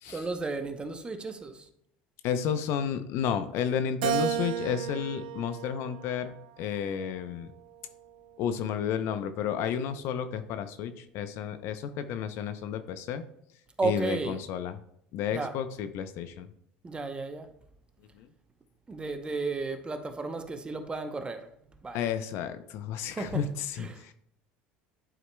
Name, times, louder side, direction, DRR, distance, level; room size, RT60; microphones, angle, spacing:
voice 1, 0.1-1.7 13.8-14.4 15.3-15.5 16.8-17.5 18.9-22.0 23.1-23.4 23.8-24.1, right 3 dB, 20° right, 0.8 m, -34 dB
voice 2, 2.2-7.5 8.4-13.2 13.8-14.8 15.1-16.5 18.2-18.3 21.9-24.1, left 8 dB, 65° left, 0.6 m, -32 dB
Keyboard (musical), 4.0-6.5 7.1-8.3, right 10 dB, 85° right, 0.4 m, -34 dB
11.0 x 4.8 x 2.2 m
supercardioid pair, 95°, 5 cm